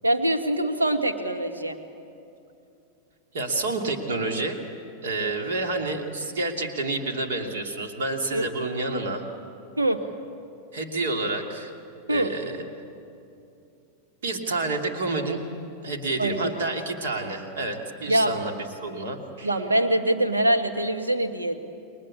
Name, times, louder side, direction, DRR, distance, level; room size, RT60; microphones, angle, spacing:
voice 1, 0.0-1.8 8.3-8.4 9.8-10.0 12.1-12.3 16.2-16.5 18.1-18.3 19.4-21.6, right 1 dB, 80° right, 6 dB, 1.8 m, -23 dB
voice 2, 3.3-4.6 5.0-9.2 10.7-11.7 12.1-12.6 14.2-15.4 15.8-19.5, right 2 dB, 60° right, 4 dB, 2.7 m, -29 dB
30.0 x 22.5 x 8.5 m, 2.6 s
figure-of-eight pair, 90°, 0 cm